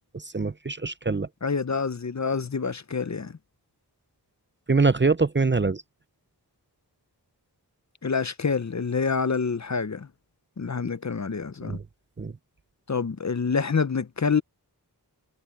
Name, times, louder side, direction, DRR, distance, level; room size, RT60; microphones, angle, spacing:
voice 1, 0.1-1.3 4.7-5.8 11.6-11.8 12.2-12.3, right 4 dB, 30° right, 0.6 m, -24 dB
voice 2, 1.4-3.4 8.0-10.1 10.6-11.8 12.9-14.4, left 5 dB, 45° left, 0.7 m, -27 dB
wide cardioid pair, 50°, 40 cm